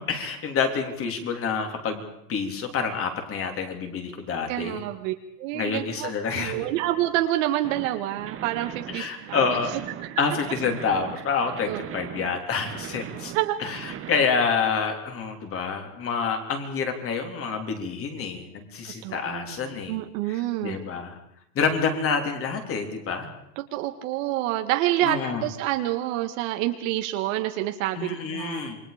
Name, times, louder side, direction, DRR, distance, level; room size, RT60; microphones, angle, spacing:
voice 1, 0.1-2.0 2.3-4.8 5.5-6.6 8.9-9.7 10.2-13.3 13.6-20.0 20.3-21.2 21.6-23.3 25.0-25.5 28.0-28.8, left 5 dB, 25° left, 5 dB, 3.5 m, -28 dB
voice 2, 4.5-5.1 5.4-9.5 11.7-12.2 13.3-13.6 19.0-20.8 23.6-28.7, right 14 dB, 55° right, 6 dB, 1.9 m, -28 dB
sound 1, 7.6-14.2, right 10 dB, 25° right, 1.5 m, -39 dB
28.0 x 22.5 x 5.2 m, 0.76 s
supercardioid pair, 150°, 48 cm